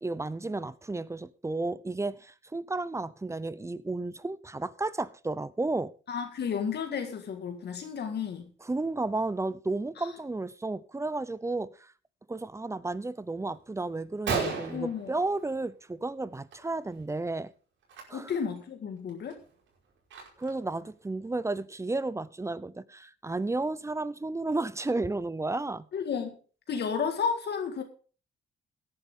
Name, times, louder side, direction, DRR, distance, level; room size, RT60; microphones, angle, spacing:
voice 1, 0.0-5.9 8.6-11.9 12.3-17.5 18.1-18.3 20.4-25.9, right 2 dB, 15° right, 0.7 m, -32 dB
voice 2, 6.1-8.5 10.0-10.1 14.7-15.1 18.1-19.4 25.9-26.4 26.7-27.8, left 6 dB, 55° left, 1.9 m, -32 dB
Gunshot gunfire, 13.6-13.7 14.0-14.1 14.3-15.9 16.2-16.6 16.8-17.0 17.8-18.0 18.6-18.7 19.1-20.7, right 5 dB, 70° right, 5.4 m, -35 dB
17.0 x 10.0 x 3.8 m
cardioid pair, 90°, 20 cm